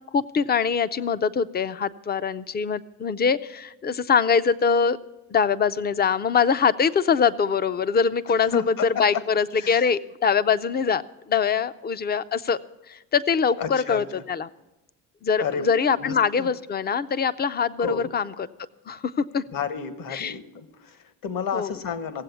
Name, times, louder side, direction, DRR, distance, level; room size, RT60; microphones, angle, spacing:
voice 1, 0.0-5.0 5.3-12.6 12.9-14.5 15.2-18.5 18.9-19.4 20.1-20.4 21.5-21.8, left 6 dB, 25° left, 15 dB, 0.5 m, -23 dB
voice 2, 8.5-9.2 9.6-9.9 13.6-14.2 15.4-15.6 15.9-16.5 17.8-18.1 19.5-22.2, left 6 dB, 50° left, 11 dB, 1.2 m, -31 dB
16.5 x 7.7 x 6.9 m, 0.98 s
cardioid pair, 90°, 42 cm